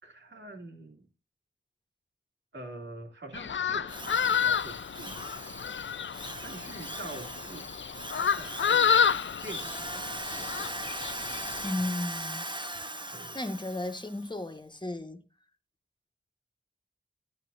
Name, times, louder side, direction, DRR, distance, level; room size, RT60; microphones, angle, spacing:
voice 1, 0.0-1.1 2.5-5.2 6.4-7.7 8.3-10.7 11.8-11.9 13.1-13.4, right 2 dB, 75° right, 2.6 m, -45 dB
sound 1, 3.3-11.7, left 7 dB, 75° left, 0.5 m, -30 dB
Drill, 3.9-14.3, right 1 dB, 25° right, 1.4 m, -40 dB
voice 2, 11.6-12.5 13.3-15.2, left 2 dB, 25° left, 1.5 m, -34 dB
11.0 x 10.0 x 2.7 m
cardioid pair, 40°, 19 cm